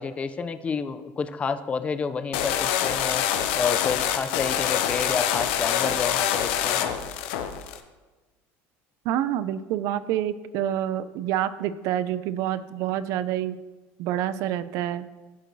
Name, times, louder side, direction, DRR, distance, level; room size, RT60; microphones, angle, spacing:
voice 1, 0.0-3.2 3.5-6.9, left 5 dB, 20° left, 11 dB, 0.3 m, -29 dB
sound 1, 2.3-7.8, left 10 dB, 90° left, 0.5 m, -25 dB
voice 2, 9.1-13.6 14.0-15.1, right 11 dB, 60° right, 14 dB, 0.3 m, -27 dB
11.0 x 4.6 x 2.6 m, 1.3 s
cardioid pair, 140°, 6 cm